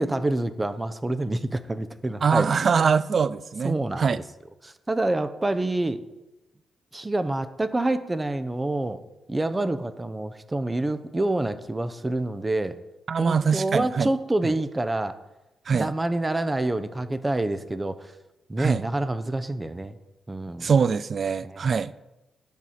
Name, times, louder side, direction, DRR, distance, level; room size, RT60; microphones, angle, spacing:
voice 1, 0.0-2.8 3.6-4.1 4.6-6.0 6.9-9.0 9.3-12.8 13.2-15.2 15.7-18.1 18.5-20.0 20.3-20.7 21.4-21.6, right 2 dB, 20° right, 0.7 m, -27 dB
voice 2, 2.2-4.2 13.1-14.1 14.4-14.5 15.7-15.9 18.6-18.8 20.6-21.9, right 6 dB, 55° right, 0.4 m, -23 dB
10.5 x 4.2 x 7.4 m
cardioid pair, 70°, 0 cm